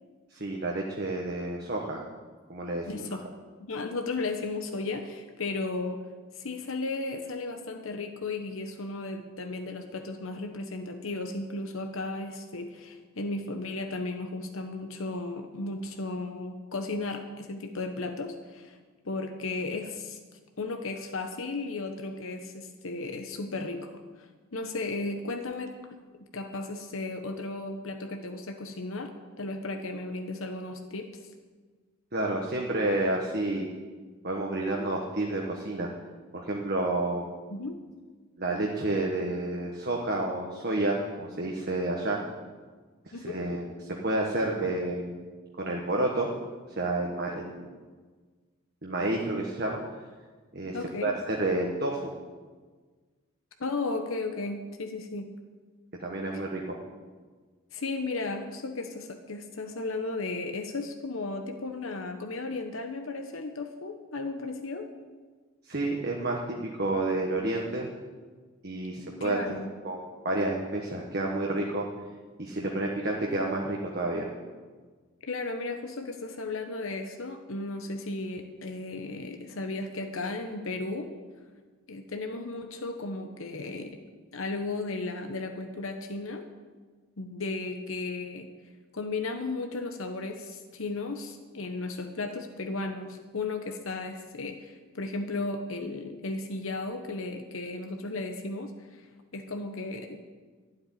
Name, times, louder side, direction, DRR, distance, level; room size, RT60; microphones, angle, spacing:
voice 1, 0.3-2.0 2.5-3.0 32.1-33.7 34.2-35.9 36.3-37.3 38.4-42.2 43.2-43.6 44.0-45.3 45.6-46.3 46.8-47.7 48.8-49.8 50.5-50.8 51.0-52.1 56.0-56.8 65.7-67.9 68.6-69.4 69.8-70.0 70.2-71.9 72.4-74.3, right 2 dB, 45° right, -1 dB, 1.4 m, -30 dB
voice 2, 2.9-3.3 3.6-6.1 6.3-18.8 19.0-20.2 20.6-25.8 26.3-29.1 29.4-31.1 37.5-37.8 43.1-43.4 50.7-51.1 53.6-55.3 56.3-56.4 57.7-64.9 69.2-69.7 75.2-81.1 81.9-84.0 84.3-86.4 87.2-88.5 88.9-99.1 99.3-100.2, left 3 dB, 70° left, 5 dB, 1.0 m, -35 dB
12.0 x 7.9 x 10.0 m, 1.4 s
head